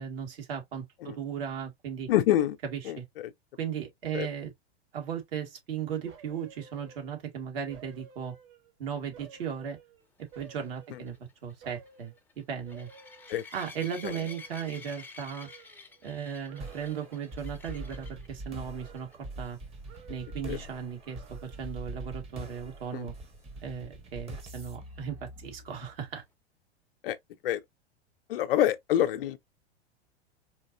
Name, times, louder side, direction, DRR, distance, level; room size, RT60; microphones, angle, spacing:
voice 1, 0.0-2.1 2.7-3.0 3.6-4.5 4.9-8.3 8.8-9.8 10.2-11.1 11.4-12.9 13.5-15.5 16.0-19.1 19.4-19.6 20.1-23.1 23.6-26.2, right 8 dB, 60° right, 1.8 m, -36 dB
voice 2, 2.1-2.6 2.8-3.3 4.1-4.3 10.9-11.0 13.3-13.4 14.0-14.2 20.4-20.6 22.9-23.1 27.0-27.2 27.4-27.6 28.3-29.4, left 12 dB, 55° left, 0.6 m, -27 dB
sound 1, 6.0-7.3 7.7-8.8 9.1-11.2 11.6-12.2 12.7-13.8 14.0-16.2 16.5-17.2 17.6-18.4 18.7-19.6 19.9-20.6 21.0-21.8 22.2-22.3, right 6 dB, 35° right, 1.5 m, -54 dB
sound 2, 10.3-18.3 18.8-19.2 19.4-19.5 19.9-20.0 23.6-23.7, left 4 dB, 5° left, 0.6 m, -50 dB
sound 3, 16.6-26.0, right 1 dB, 20° right, 1.0 m, -43 dB
4.4 x 2.8 x 2.6 m
figure-of-eight pair, 100°, 33 cm